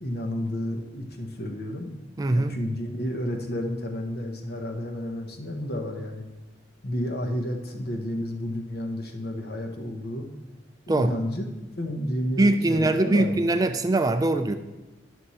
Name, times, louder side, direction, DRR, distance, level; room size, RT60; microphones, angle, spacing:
voice 1, 0.0-1.9 2.3-6.2 6.8-10.3 10.9-11.5 11.8-13.6, left 1 dB, 55° left, 4 dB, 1.0 m, -31 dB
voice 2, 2.2-2.6 10.9-11.1 12.4-14.6, right 2 dB, 20° right, 8 dB, 0.3 m, -22 dB
10.5 x 6.3 x 4.2 m, 1.1 s
head